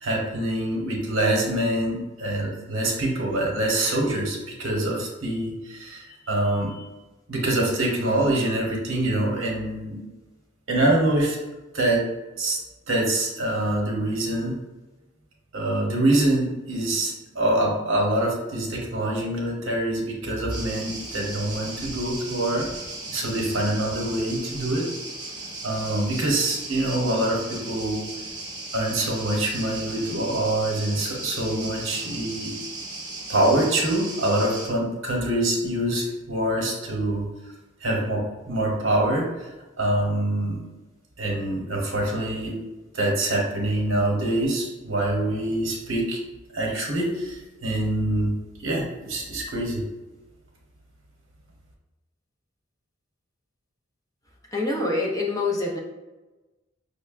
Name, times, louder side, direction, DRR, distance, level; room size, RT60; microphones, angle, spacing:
voice 1, 0.0-6.9 7.3-10.0 10.7-11.4 11.7-12.0 12.4-12.6 12.9-14.6 15.5-22.7 23.1-24.9 25.6-28.0 28.7-32.5 33.3-37.3 37.8-39.5 39.8-40.6 41.2-42.6 42.9-46.2 46.5-48.3 48.6-49.8, right 1 dB, 75° right, -1 dB, 0.9 m, -25 dB
sound 1, 20.5-34.7, right 2 dB, 20° right, 0.7 m, -36 dB
voice 2, 54.5-55.8, left 2 dB, 15° left, -2 dB, 0.5 m, -25 dB
5.4 x 2.1 x 2.4 m, 1.1 s
head